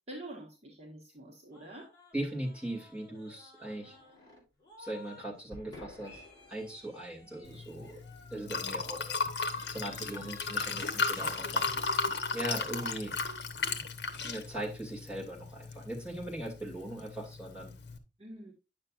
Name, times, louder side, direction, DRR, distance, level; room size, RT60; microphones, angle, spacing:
voice 1, 0.1-1.9 18.2-18.5, right 1 dB, 35° right, -2 dB, 1.5 m, -46 dB
sound 1, 1.5-5.3 5.5-12.2 12.5-12.8, left 2 dB, 25° left, 3.7 m, -53 dB
voice 2, 2.1-4.0 4.8-6.2 6.5-8.0 8.3-9.2 9.7-11.7 12.3-13.2 14.2-17.7, right 1 dB, 5° right, -3 dB, 2.6 m, -39 dB
Liquid, 7.4-18.0, left 4 dB, 65° left, 1.2 m, -36 dB
9.7 x 6.9 x 2.5 m, 0.28 s
head